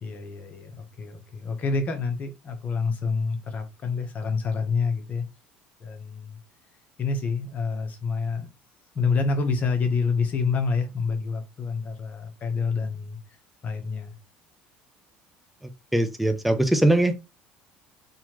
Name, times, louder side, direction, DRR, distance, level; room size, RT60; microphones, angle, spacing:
voice 1, 0.0-5.2 5.8-6.4 7.0-8.5 8.9-13.2 13.6-14.2, left 4 dB, 40° left, 1.1 m, -27 dB
voice 2, 15.6-17.2, right 1 dB, ahead, 0.7 m, -22 dB
4.1 x 2.9 x 2.9 m
supercardioid pair, 85°, 4 cm